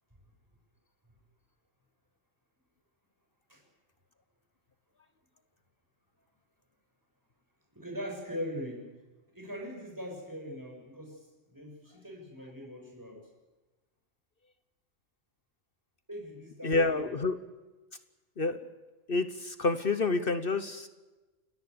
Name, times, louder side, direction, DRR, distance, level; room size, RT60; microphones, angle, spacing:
voice 1, 7.7-8.9 9.3-13.2 16.1-17.2, equal, 15° right, 1 dB, 7.2 m, -41 dB
voice 2, 16.6-17.4 18.4-18.6 19.1-20.9, left 3 dB, 50° left, 11 dB, 1.2 m, -28 dB
29.0 x 20.5 x 6.9 m, 1.2 s
omnidirectional pair, 1.3 m